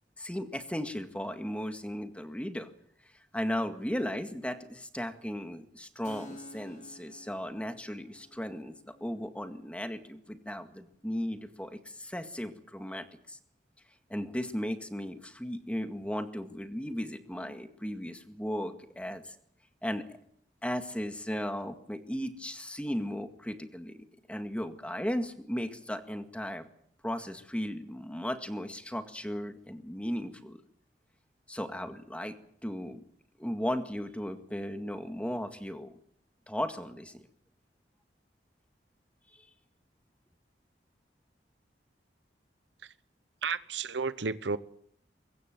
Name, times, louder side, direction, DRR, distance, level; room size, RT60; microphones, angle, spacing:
voice 1, 0.2-2.7 3.3-8.7 9.0-13.4 14.1-19.3 19.8-20.2 20.6-26.7 27.0-30.6 31.5-32.4 32.6-33.0 33.4-35.9 36.5-37.2 39.3-39.5, equal, 5° left, 1.9 m, -36 dB
Keyboard (musical), 6.0-13.4, left 1 dB, 40° left, 3.8 m, -55 dB
voice 2, 43.4-44.6, right 4 dB, 80° right, 1.0 m, -32 dB
23.5 x 22.0 x 7.7 m
head